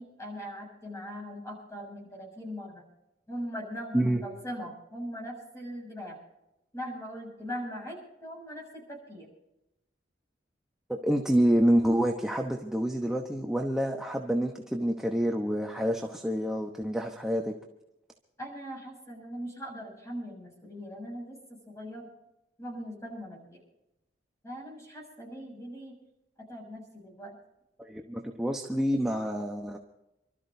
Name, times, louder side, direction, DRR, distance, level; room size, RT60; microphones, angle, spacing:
voice 1, 0.0-2.8 3.3-6.2 6.7-9.3 18.4-22.1 22.6-23.6 24.4-25.9 26.4-27.4, equal, 15° left, -1 dB, 6.8 m, -40 dB
voice 2, 10.9-17.5 27.8-29.8, equal, 5° right, 1 dB, 1.0 m, -27 dB
29.5 x 13.5 x 2.7 m, 0.91 s
head